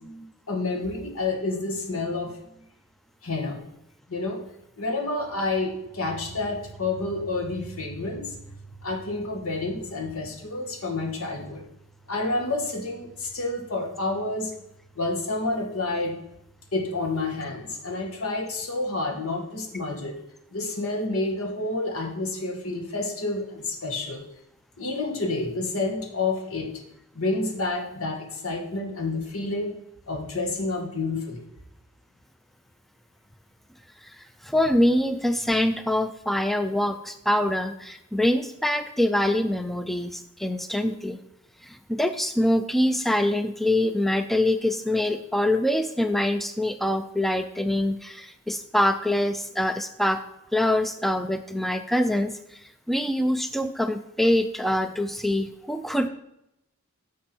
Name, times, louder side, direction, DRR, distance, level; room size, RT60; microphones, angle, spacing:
voice 1, 0.0-2.4 3.2-3.6 4.1-4.4 4.8-8.4 8.8-11.6 12.1-14.5 15.0-16.2 16.7-20.2 20.5-24.3 24.8-26.7 27.1-29.8 30.1-31.4, left 2 dB, 80° left, 2 dB, 1.7 m, -29 dB
voice 2, 34.0-41.2 41.6-50.2 50.5-56.1, left 1 dB, ahead, 9 dB, 0.3 m, -24 dB
10.0 x 6.2 x 4.4 m, 0.84 s
head